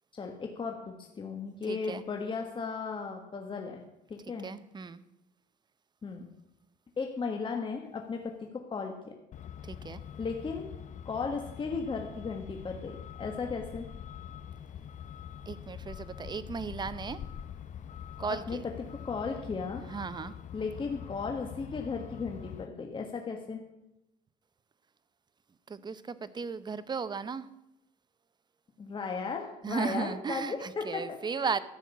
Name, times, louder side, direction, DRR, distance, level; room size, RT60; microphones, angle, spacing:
voice 1, 0.1-3.8 4.1-4.5 6.0-6.3 7.0-9.1 10.2-10.7 11.0-13.9 18.3-19.8 20.5-23.6 28.8-31.6, left 4 dB, 30° left, 2 dB, 1.5 m, -36 dB
voice 2, 1.7-2.0 4.4-5.0 9.7-10.0 15.5-17.2 18.2-18.6 19.9-20.3 25.7-27.5 29.6-31.6, right 5 dB, 25° right, 15 dB, 0.7 m, -35 dB
Truck, 9.3-22.7, left 9 dB, 45° left, 0.6 m, -44 dB
13.0 x 6.3 x 8.4 m, 0.88 s
cardioid pair, 110°, 17 cm